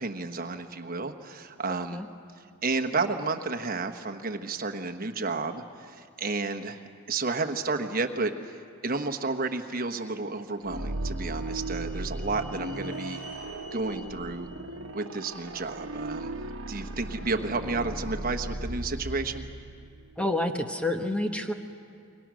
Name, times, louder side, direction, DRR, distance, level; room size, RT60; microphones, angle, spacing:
voice 1, 0.0-2.0 2.6-13.2 13.7-14.5 14.9-16.3 16.7-19.5, right 3 dB, 40° right, 5 dB, 1.2 m, -31 dB
voice 2, 1.7-2.0 20.2-21.5, left 1 dB, 5° left, 5 dB, 1.0 m, -29 dB
sound 1, 10.6-20.3, right 1 dB, 65° right, 1.2 m, -36 dB
sound 2, 10.9-15.9, equal, 45° left, 5.9 m, -51 dB
29.0 x 23.0 x 6.3 m, 2.2 s
head